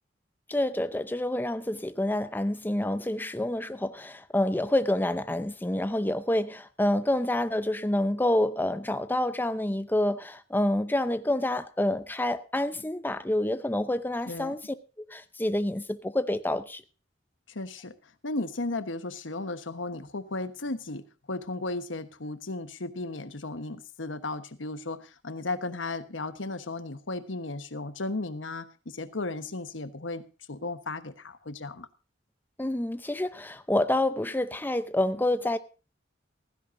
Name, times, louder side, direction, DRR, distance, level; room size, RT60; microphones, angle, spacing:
voice 1, 0.5-14.6 15.1-16.8 32.6-35.6, left 1 dB, 10° left, 0.7 m, -28 dB
voice 2, 17.5-17.9 18.2-31.9, left 2 dB, 85° left, 1.3 m, -35 dB
15.5 x 15.5 x 2.7 m
head